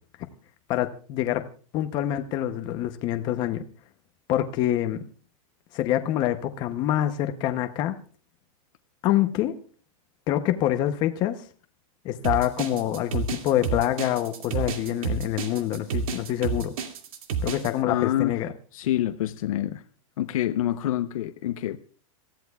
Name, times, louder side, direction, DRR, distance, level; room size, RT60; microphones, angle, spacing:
voice 1, 0.7-1.4 1.7-3.7 4.3-5.0 5.7-7.9 9.0-9.5 10.3-11.4 12.0-16.7 17.4-18.5, left 12 dB, 25° left, 0.7 m, -26 dB
sound 1, 12.2-17.7, right 5 dB, 75° right, 2.3 m, -29 dB
voice 2, 17.8-18.4 18.7-19.8 20.2-21.8, left 12 dB, 70° left, 0.8 m, -26 dB
27.0 x 14.5 x 2.3 m
supercardioid pair, 170°, 18 cm